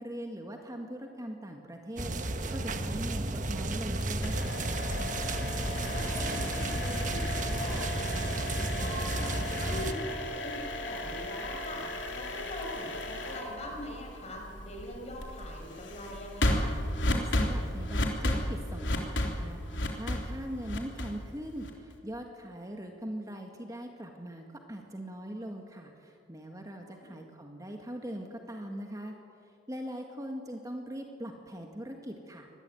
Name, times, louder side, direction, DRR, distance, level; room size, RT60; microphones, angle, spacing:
voice 1, 0.0-4.6 17.1-29.2 29.7-32.5, equal, 20° right, 3 dB, 1.9 m, -41 dB
sound 1, 2.0-9.9, right 2 dB, 45° right, 1.4 m, -32 dB
sound 2, 4.0-21.9, left 1 dB, 90° left, 3.4 m, -34 dB
voice 2, 5.7-16.8 26.8-27.2, left 1 dB, 35° left, 1 dB, 6.4 m, -42 dB
25.5 x 19.5 x 9.2 m, 2.4 s
head